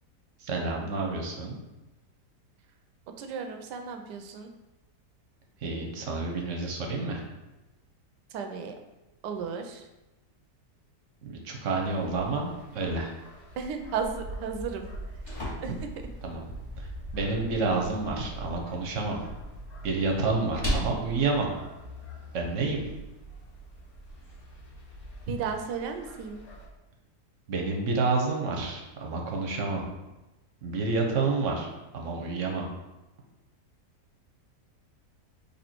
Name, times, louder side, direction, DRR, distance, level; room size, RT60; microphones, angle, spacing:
voice 1, 0.4-1.6 5.6-7.2 11.2-13.1 16.2-16.5 16.8-16.9 17.1-19.2 19.8-21.5 22.3-22.8 27.5-29.9 30.6-31.7 31.9-32.6, right 3 dB, 55° right, 0 dB, 1.0 m, -29 dB
voice 2, 3.2-4.5 8.3-8.7 9.2-9.8 13.6-14.9 15.6-15.9 25.3-26.4, right 6 dB, 90° right, 6 dB, 1.2 m, -34 dB
sound 1, 11.7-26.7, right 1 dB, 65° left, 1.4 m, -44 dB
sound 2, 14.8-22.8, equal, 25° left, 1.0 m, -39 dB
4.2 x 2.9 x 4.3 m, 1.0 s
omnidirectional pair, 1.8 m